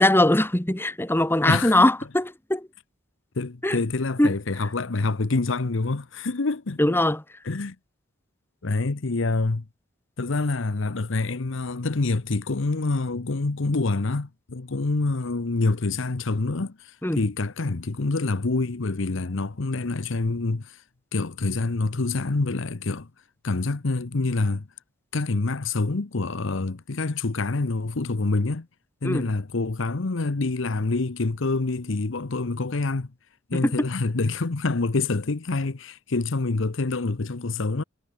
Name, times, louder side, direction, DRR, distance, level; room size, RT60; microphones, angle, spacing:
voice 1, 0.0-2.7 3.6-3.8 4.2-4.3 6.8-7.2 17.0-17.2 29.0-29.3 33.5-33.7, left 1 dB, 10° left, 1.6 m, -21 dB
voice 2, 1.4-1.8 3.4-7.0 7.4-7.8 8.6-9.6 10.2-20.8 21.1-23.1 23.4-24.7 25.1-28.7 29.0-33.1 33.5-37.8, left 3 dB, 70° left, 0.9 m, -26 dB
head